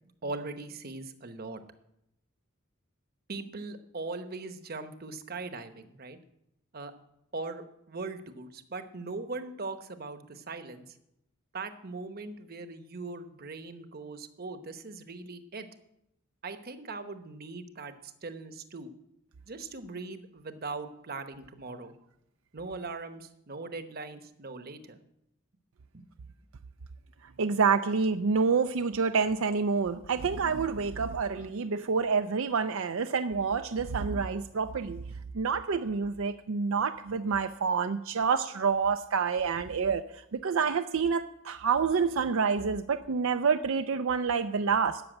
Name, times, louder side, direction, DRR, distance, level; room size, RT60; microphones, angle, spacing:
voice 1, 0.2-1.6 3.3-6.2 6.7-6.9 7.3-10.8 11.5-15.7 16.4-18.9 19.5-21.9 22.5-25.0 25.9-26.0, right 3 dB, 45° right, 9 dB, 1.0 m, -40 dB
voice 2, 27.4-35.0 35.3-45.0, right 5 dB, 75° right, 9 dB, 0.5 m, -28 dB
13.0 x 6.9 x 8.9 m, 0.82 s
head